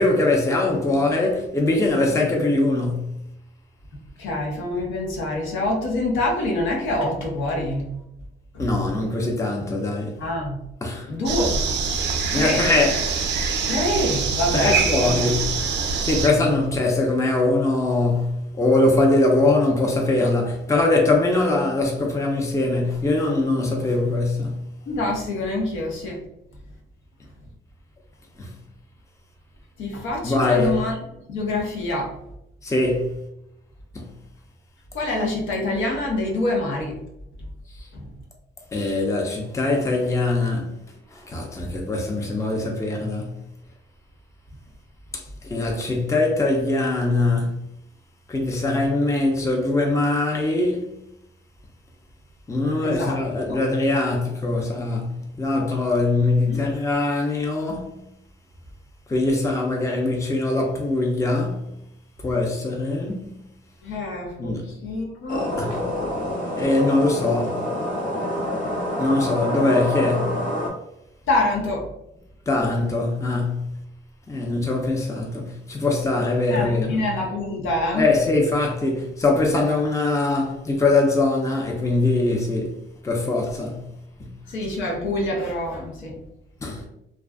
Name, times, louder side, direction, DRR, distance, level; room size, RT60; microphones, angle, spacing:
voice 1, 0.0-3.1 8.6-10.2 10.8-11.1 12.3-13.1 14.5-15.6 16.0-24.6 28.4-28.5 30.2-30.8 32.6-33.2 33.9-34.1 38.7-40.7 41.3-43.4 45.5-47.5 48.3-50.9 52.5-57.9 59.1-61.6 62.2-63.2 64.4-64.7 65.6-65.7 66.5-67.6 69.0-70.4 72.5-73.7 74.3-77.0 78.0-82.7 83.0-83.8 84.2-84.3 86.6-86.8, left 2 dB, 15° left, 0.5 m, -22 dB
voice 2, 4.2-8.0 8.5-8.7 10.2-10.6 11.1-11.7 12.3-12.6 13.7-15.3 16.3-16.7 24.9-26.2 29.8-32.1 34.9-37.0 37.9-38.1 52.8-53.2 53.5-53.6 56.4-56.6 63.8-65.8 71.3-71.9 76.5-78.1 84.5-86.2, left 1 dB, 80° left, 0.9 m, -26 dB
sound 1, 11.3-16.3, right 5 dB, 65° right, 0.4 m, -24 dB
sound 2, 65.3-70.7, left 1 dB, 40° left, 0.9 m, -27 dB
2.5 x 2.3 x 2.3 m
cardioid pair, 90°, 20 cm